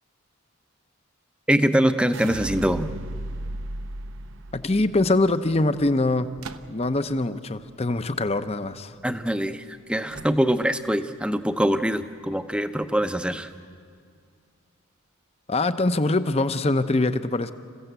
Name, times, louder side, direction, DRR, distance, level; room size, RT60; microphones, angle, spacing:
voice 1, 1.5-2.9 9.0-13.5, equal, 5° right, 9 dB, 0.7 m, -23 dB
sound 1, 2.1-8.3 8.7-9.3, right 2 dB, 60° right, 0.5 m, -37 dB
voice 2, 4.5-6.3 6.7-9.0 15.5-17.5, left 2 dB, 30° left, 11 dB, 0.7 m, -23 dB
sound 2, 6.4-7.1 10.1-10.8, right 4 dB, 85° right, 0.8 m, -43 dB
28.0 x 15.5 x 8.1 m, 2.2 s
head